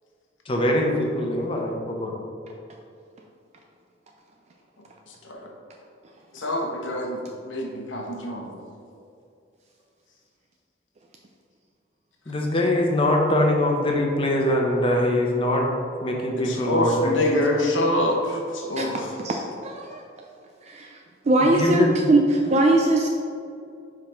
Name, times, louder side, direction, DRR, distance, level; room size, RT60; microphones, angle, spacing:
voice 1, 0.5-2.1 8.2-8.3 12.3-15.7 16.0-17.1 21.4-22.0, left 1 dB, 30° left, 0 dB, 0.9 m, -23 dB
voice 2, 6.3-8.5 16.3-19.1, left 1 dB, 85° left, 0 dB, 1.1 m, -25 dB
voice 3, 19.2-20.0 20.7-21.0 21.3-23.1, right 2 dB, 35° right, 1 dB, 0.4 m, -21 dB
5.7 x 4.9 x 4.4 m, 2.4 s
head